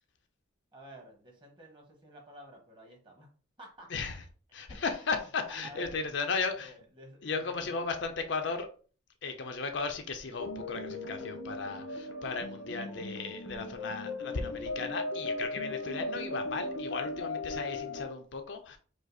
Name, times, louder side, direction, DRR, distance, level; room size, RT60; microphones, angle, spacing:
voice 1, 0.7-3.3 3.6-3.9 4.7-5.9 6.5-7.7, equal, 25° right, 1.3 m, -51 dB
voice 2, 3.9-4.2 4.5-6.7 7.2-8.7 9.2-18.8, left 4 dB, 60° left, 0.6 m, -35 dB
sound 1, 10.4-18.1, left 2 dB, 85° left, 1.0 m, -37 dB
5.0 x 2.0 x 4.0 m
head